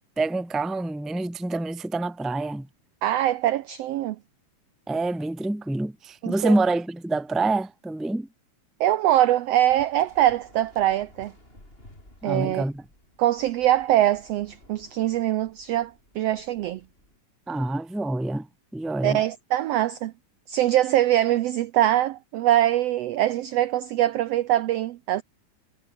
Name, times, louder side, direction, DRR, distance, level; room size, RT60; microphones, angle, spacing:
voice 1, 0.2-2.7 4.9-8.3 12.2-12.8 17.5-18.5 18.7-19.2, right 2 dB, ahead, 0.7 m, -26 dB
voice 2, 3.0-4.2 6.2-6.5 8.8-11.3 12.2-12.6 13.2-16.8 19.0-20.1 20.5-25.2, right 13 dB, 85° right, 1.4 m, -23 dB
Waves surf, 9.6-17.2, left 1 dB, 15° left, 8.1 m, -54 dB
omnidirectional pair, 3.7 m